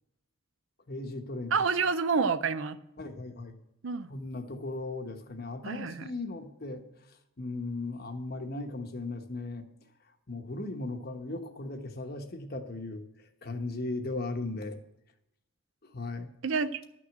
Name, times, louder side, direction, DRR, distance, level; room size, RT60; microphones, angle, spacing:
voice 1, 0.9-1.5 3.0-3.5 4.1-6.8 7.4-9.7 10.3-13.1 13.4-14.8 15.9-16.3, left 2 dB, 50° left, 6 dB, 1.2 m, -37 dB
voice 2, 1.5-2.8 3.8-4.1 5.6-6.1 16.4-16.8, right 5 dB, 70° right, 12 dB, 0.6 m, -28 dB
12.0 x 6.3 x 7.4 m, 0.85 s
head